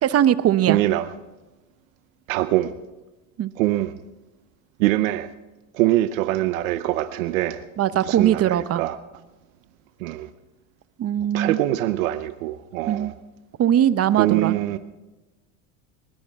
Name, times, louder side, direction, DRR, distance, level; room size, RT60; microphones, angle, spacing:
voice 1, 0.0-0.8 3.4-3.5 7.8-8.8 11.0-11.6 12.9-13.1 13.6-14.6, right 10 dB, 40° right, 15 dB, 0.8 m, -20 dB
voice 2, 0.7-1.1 2.3-2.7 3.6-3.9 4.8-5.3 5.7-7.6 8.0-9.0 10.0-10.3 11.3-13.1 14.2-14.8, right 15 dB, 90° right, 11 dB, 0.8 m, -23 dB
20.0 x 17.0 x 3.5 m, 1.1 s
supercardioid pair, 100°, 39 cm